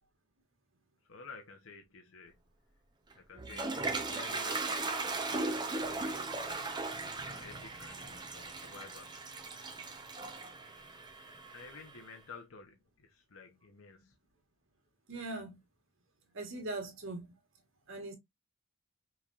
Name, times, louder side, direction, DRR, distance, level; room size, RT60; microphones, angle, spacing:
voice 1, 1.0-2.4 3.1-6.4 7.2-9.1 11.5-14.1, left 4 dB, 80° left, 0.9 m, -52 dB
Toilet flush, 3.1-12.0, right 3 dB, 20° right, 0.8 m, -38 dB
voice 2, 15.1-15.6 16.3-17.3 17.9-18.1, right 2 dB, 70° right, 1.9 m, -40 dB
5.7 x 3.3 x 2.5 m
head